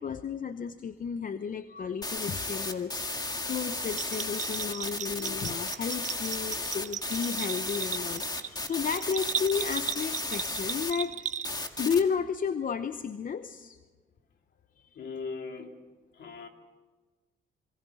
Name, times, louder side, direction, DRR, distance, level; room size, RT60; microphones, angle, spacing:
voice 1, 0.0-11.1 11.8-13.8 14.8-14.9, left 6 dB, 45° left, 11 dB, 0.8 m, -33 dB
sound 1, 2.0-10.9 11.4-12.0, left 2 dB, 20° left, 1.9 m, -34 dB
Bell, 3.9-11.8, right 7 dB, 40° right, 0.6 m, -36 dB
voice 2, 15.0-15.9 16.1-16.5, left 4 dB, 60° left, 4 dB, 2.8 m, -39 dB
27.5 x 22.5 x 5.0 m, 1.3 s
cardioid pair, 90°, 20 cm